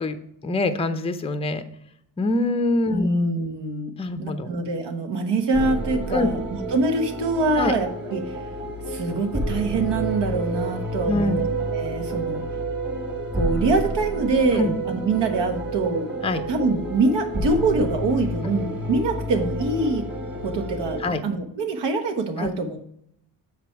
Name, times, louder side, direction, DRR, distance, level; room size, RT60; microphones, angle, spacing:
voice 1, 0.0-1.6 2.2-3.1 4.0-4.5 6.1-6.3 7.5-7.7 11.1-11.4 14.5-14.7 16.2-16.4 21.0-21.2 22.4-22.5, left 2 dB, 15° left, 9 dB, 0.6 m, -24 dB
voice 2, 2.9-3.9 4.2-6.4 6.7-8.4 8.9-11.5 11.7-12.4 13.3-16.1 16.5-20.1 20.4-22.8, right 3 dB, 70° right, 6 dB, 1.3 m, -24 dB
sound 1, 5.5-21.0, right 2 dB, 25° right, 1.9 m, -29 dB
6.9 x 5.1 x 4.6 m, 0.71 s
cardioid pair, 95°, 44 cm